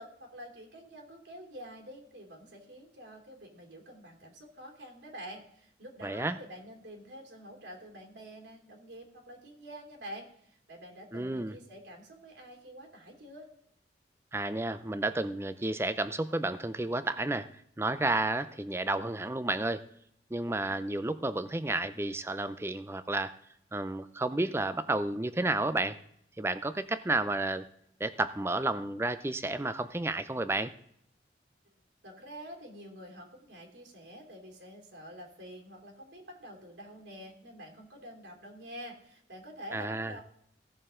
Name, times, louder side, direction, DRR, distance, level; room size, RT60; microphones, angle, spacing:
voice 1, 0.0-13.5 32.0-40.2, equal, 80° right, 0 dB, 2.9 m, -47 dB
voice 2, 6.0-6.4 11.1-11.5 14.3-17.5 17.8-19.8 20.3-23.3 23.7-26.0 26.4-27.7 28.0-30.7 39.7-40.1, right 2 dB, 15° right, 13 dB, 0.5 m, -31 dB
16.0 x 6.8 x 3.7 m, 0.70 s
head